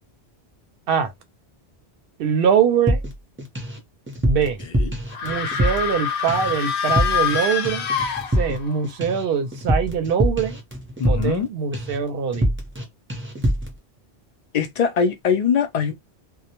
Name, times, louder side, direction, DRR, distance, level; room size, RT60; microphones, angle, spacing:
voice 1, 2.2-3.0 4.2-4.6 5.2-7.9 8.4-10.6 11.1-12.5, right 7 dB, 65° right, 0.7 m, -23 dB
sound 1, 2.9-3.8 4.1-6.0 6.3-6.6 6.9-7.4 7.6-11.5 11.7-12.0 12.3-12.8 13.1-13.7, equal, 15° right, 0.5 m, -24 dB
sound 2, 5.1-8.8, left 7 dB, 85° left, 0.9 m, -25 dB
voice 2, 11.0-11.5 14.5-15.9, left 6 dB, 55° left, 0.5 m, -21 dB
2.1 x 2.1 x 2.8 m
omnidirectional pair, 1.1 m